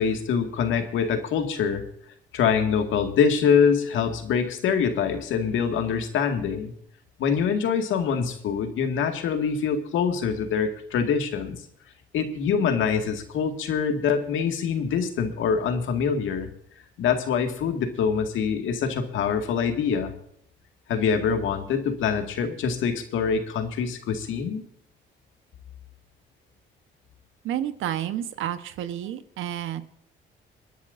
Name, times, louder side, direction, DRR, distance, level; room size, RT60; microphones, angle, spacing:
voice 1, 0.0-1.8 2.3-6.7 7.2-11.6 12.1-16.5 17.0-20.1 20.9-24.6, left 6 dB, 80° left, 6 dB, 2.1 m, -24 dB
voice 2, 27.4-29.8, right 11 dB, 85° right, 11 dB, 1.2 m, -30 dB
28.0 x 10.5 x 2.7 m, 0.69 s
cardioid pair, 90°, 20 cm